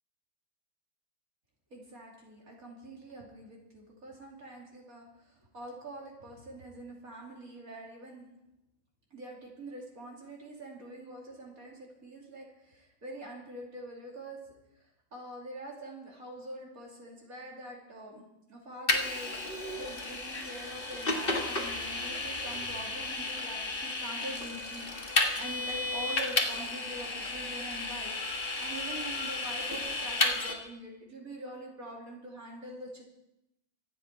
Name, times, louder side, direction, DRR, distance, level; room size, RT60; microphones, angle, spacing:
voice 1, 1.7-8.2 9.1-14.4 14.8-18.2 18.5-19.4 19.8-28.1 28.6-33.0, right 1 dB, 50° right, -2 dB, 3.3 m, -45 dB
Vehicle, 18.9-30.5, left 2 dB, 30° left, 1.6 m, -33 dB
25.0 x 8.7 x 4.6 m, 0.86 s
omnidirectional pair, 2.0 m